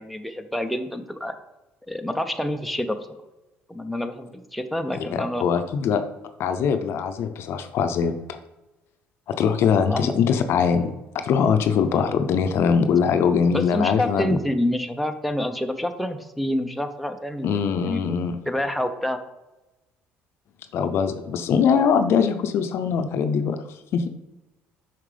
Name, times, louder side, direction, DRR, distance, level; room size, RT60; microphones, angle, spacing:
voice 1, 0.0-1.3 1.9-3.0 3.7-5.4 9.9-10.1 13.5-17.5 17.8-18.1 18.5-19.2, left 1 dB, ahead, 6 dB, 0.5 m, -27 dB
voice 2, 4.9-6.0 6.4-8.4 9.3-14.4 17.4-18.4 20.7-23.6 23.9-24.1, left 6 dB, 60° left, 8 dB, 0.5 m, -22 dB
5.8 x 5.2 x 3.3 m, 1.0 s
cardioid pair, 95°, 5 cm